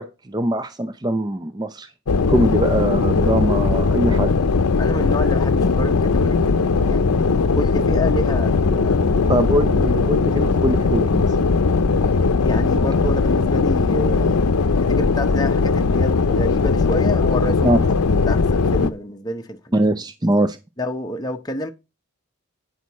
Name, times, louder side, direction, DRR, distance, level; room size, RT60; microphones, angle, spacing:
voice 1, 0.0-1.9 2.3-4.3 9.3-11.4 17.6-17.8 18.8-18.9 19.7-20.6, right 1 dB, 20° right, 0.5 m, -22 dB
sound 1, 2.1-18.9, left 4 dB, 85° left, 0.6 m, -19 dB
voice 2, 4.8-9.1 12.4-17.8 18.2-20.0 20.8-21.7, equal, 15° left, 0.8 m, -29 dB
sound 2, 6.1-13.8, right 1 dB, 75° right, 2.0 m, -36 dB
9.4 x 6.3 x 4.2 m
head